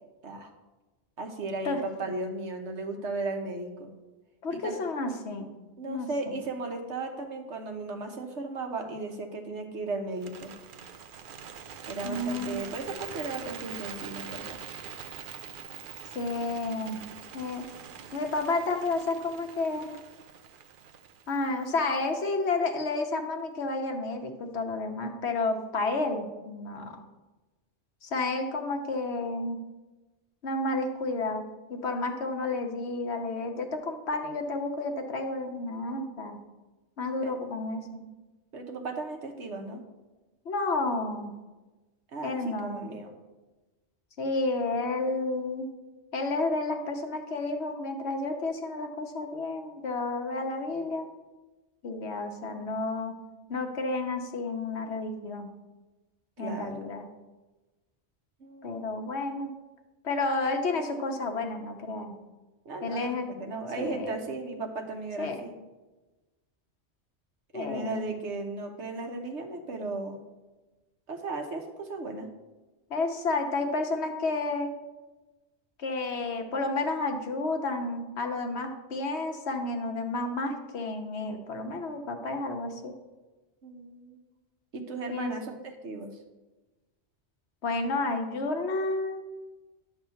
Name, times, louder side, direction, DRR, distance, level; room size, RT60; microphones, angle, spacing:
voice 1, 1.2-3.9 4.5-4.8 5.8-10.5 11.9-14.6 26.7-27.0 37.2-37.3 38.5-39.8 42.1-43.1 56.4-56.8 58.4-58.8 62.6-65.5 67.5-70.2 71.1-72.3 83.6-84.2 84.7-86.1, right 3 dB, 80° right, 4 dB, 1.4 m, -36 dB
voice 2, 4.4-5.5 5.9-6.4 12.0-12.6 16.1-17.0 17.3-17.7 18.1-19.9 21.3-27.0 28.0-29.6 30.4-31.4 31.7-36.4 37.0-38.0 40.4-41.3 42.2-42.9 44.2-45.7 46.1-51.1 51.8-53.2 53.5-55.5 56.4-57.0 58.6-59.5 60.0-62.2 62.8-63.3 63.8-64.2 65.2-65.4 67.5-68.1 72.9-74.7 75.8-82.9 85.1-85.3 87.6-89.2, left 3 dB, 70° left, 4 dB, 1.2 m, -31 dB
Bird, 10.1-22.3, right 7 dB, 55° right, 0.7 m, -44 dB
10.5 x 3.6 x 7.0 m, 1.2 s
omnidirectional pair, 1.2 m